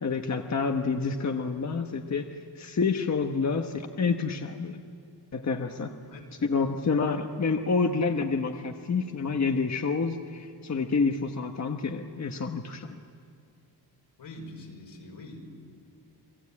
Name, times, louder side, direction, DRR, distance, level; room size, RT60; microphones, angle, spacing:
voice 1, 0.0-4.8 5.3-6.0 6.4-13.0, left 4 dB, 40° left, 4 dB, 1.2 m, -28 dB
voice 2, 14.2-15.4, left 1 dB, 80° left, 1 dB, 5.5 m, -44 dB
29.5 x 22.0 x 8.6 m, 2.4 s
wide cardioid pair, 120°, 41 cm